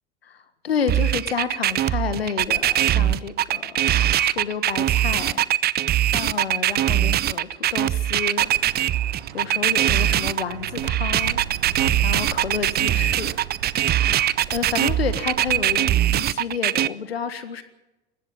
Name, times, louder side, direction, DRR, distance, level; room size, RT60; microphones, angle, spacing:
voice 1, 0.2-5.4 6.1-8.5 9.3-11.4 12.0-13.4 14.5-17.6, left 6 dB, 80° left, 12 dB, 1.6 m, -30 dB
sound 1, 0.9-16.9, right 12 dB, 30° right, 0.7 m, -21 dB
sound 2, 8.4-16.1, right 9 dB, 75° right, 1.2 m, -37 dB
20.0 x 16.0 x 8.8 m, 1.0 s
figure-of-eight pair, 70°, 30 cm